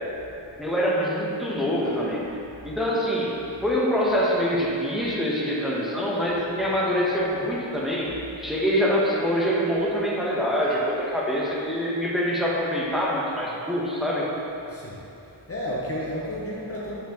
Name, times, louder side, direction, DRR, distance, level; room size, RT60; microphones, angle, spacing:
voice 1, 0.6-2.2 2.6-3.4 3.6-14.3, equal, ahead, -5 dB, 1.0 m, -25 dB
voice 2, 14.7-17.0, equal, 30° left, -5 dB, 0.7 m, -33 dB
8.2 x 5.9 x 2.9 m, 3.0 s
wide cardioid pair, 125°, 48 cm